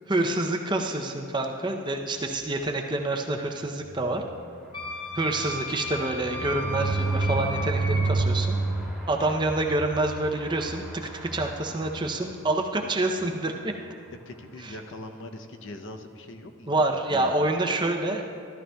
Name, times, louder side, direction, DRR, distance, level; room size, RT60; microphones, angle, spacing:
voice 1, 0.1-4.2 5.1-8.6 9.1-13.7 14.6-14.8 16.7-18.2, right 2 dB, 20° right, 3 dB, 0.5 m, -27 dB
sound 1, 3.8-12.6 13.1-13.2 13.5-13.6 13.9-14.1, right 3 dB, ahead, 1.6 m, -31 dB
Wind instrument woodwind instrument, 4.7-8.1, left 1 dB, 20° left, 0.7 m, -35 dB
voice 2, 14.3-17.5, left 2 dB, 60° left, 6 dB, 0.6 m, -42 dB
14.0 x 12.5 x 2.3 m, 2.4 s
head